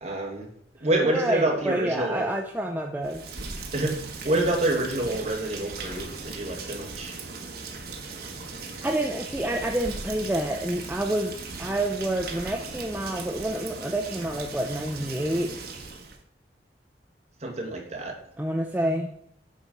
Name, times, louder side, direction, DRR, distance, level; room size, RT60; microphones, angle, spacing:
voice 1, 0.0-0.5 0.8-2.3 3.7-4.0 4.2-7.1 17.4-18.1, right 1 dB, 40° right, 0 dB, 1.9 m, -27 dB
voice 2, 1.0-3.2 8.8-15.5 18.4-19.1, right 1 dB, 10° right, 2 dB, 0.5 m, -28 dB
Rain, 3.0-16.2, right 4 dB, 60° right, 1.2 m, -38 dB
8.4 x 4.2 x 5.2 m, 0.71 s
head